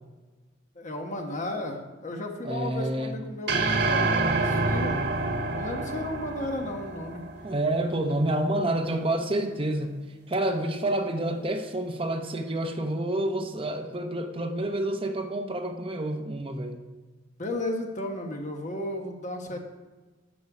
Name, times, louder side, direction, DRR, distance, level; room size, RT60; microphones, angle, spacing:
voice 1, 0.7-5.0 5.5-7.2 17.4-19.6, left 1 dB, 40° left, 3 dB, 1.2 m, -34 dB
voice 2, 2.4-3.2 7.4-9.9 10.3-16.8, right 1 dB, 30° right, 5 dB, 0.8 m, -28 dB
sound 1, 3.5-7.9, right 3 dB, 60° right, 1.4 m, -27 dB
10.5 x 7.0 x 4.9 m, 1.3 s
head